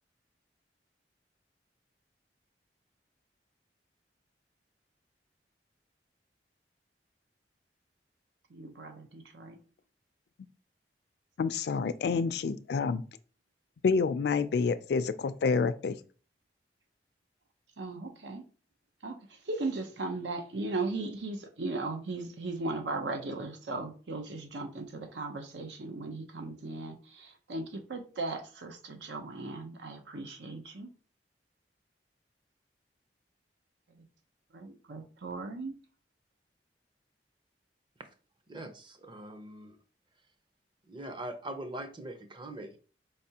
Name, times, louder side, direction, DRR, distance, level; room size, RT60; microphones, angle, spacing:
voice 1, 8.5-9.6 17.8-18.4 19.0-30.9 34.0-34.1 34.5-35.8, right 3 dB, 85° right, 0.7 m, -37 dB
voice 2, 11.4-13.0 13.8-16.0, left 5 dB, 65° left, 0.3 m, -28 dB
voice 3, 38.5-39.8 40.9-42.8, right 1 dB, 25° right, 0.6 m, -42 dB
4.6 x 3.3 x 2.8 m
head